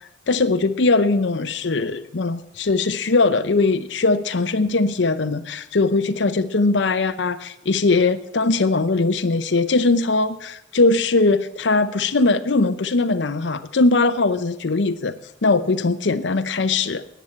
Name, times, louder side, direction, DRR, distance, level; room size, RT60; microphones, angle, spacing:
voice 1, 0.3-15.1 15.4-17.1, left 3 dB, 70° left, 12 dB, 0.7 m, -20 dB
14.0 x 9.3 x 8.5 m, 0.82 s
head